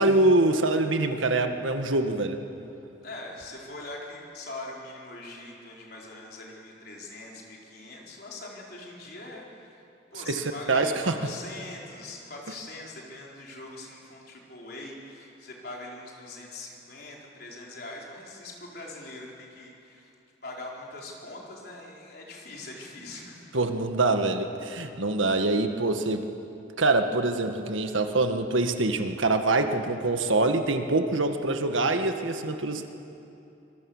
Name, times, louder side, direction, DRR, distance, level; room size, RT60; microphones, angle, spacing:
voice 1, 0.0-2.4 10.1-11.2 23.5-26.2 26.8-32.9, right 2 dB, 90° right, 6 dB, 1.7 m, -25 dB
voice 2, 3.0-9.7 10.1-20.1 20.4-23.5, left 2 dB, 50° left, -2 dB, 4.6 m, -42 dB
25.5 x 22.5 x 7.3 m, 2.7 s
head